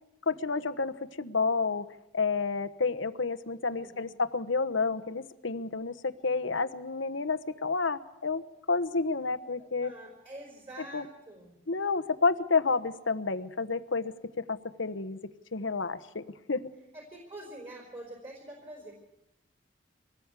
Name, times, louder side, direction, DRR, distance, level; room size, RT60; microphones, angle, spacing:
voice 1, 0.3-1.9 2.1-8.4 8.7-9.9 10.9-11.0 11.7-16.7, left 4 dB, 75° left, 12 dB, 1.1 m, -30 dB
voice 2, 3.6-4.0 9.6-11.6 16.9-18.9, right 1 dB, 30° right, 1 dB, 4.6 m, -46 dB
25.0 x 19.0 x 8.3 m, 0.90 s
head